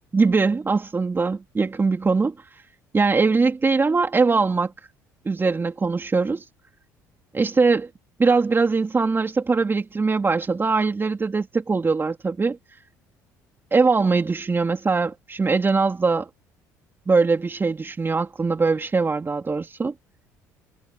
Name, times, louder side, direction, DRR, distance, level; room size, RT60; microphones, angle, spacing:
voice 1, 0.1-2.3 2.9-4.7 5.2-6.4 7.3-7.9 8.2-12.6 13.7-16.3 17.1-19.9, right 4 dB, 25° right, 2.8 m, -21 dB
hypercardioid pair, 60°, 8 cm